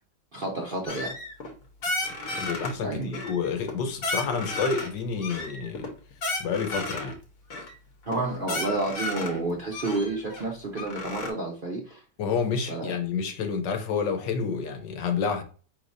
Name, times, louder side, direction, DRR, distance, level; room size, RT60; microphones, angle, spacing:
voice 1, 0.3-1.1 2.8-3.2 8.1-12.0 12.7-13.0, right 2 dB, 45° right, 0.7 m, -30 dB
sound 1, 0.9-1.5 1.8-2.7 3.1-3.7 4.0-4.9 5.2-7.1 7.5-7.7 8.1-8.2 8.4-9.4 9.7-11.3, left 2 dB, 55° left, 1.4 m, -33 dB
voice 2, 2.3-5.9 6.4-7.1 12.2-15.4, left 5 dB, 75° left, 1.5 m, -29 dB
5.1 x 3.8 x 2.6 m
omnidirectional pair, 2.0 m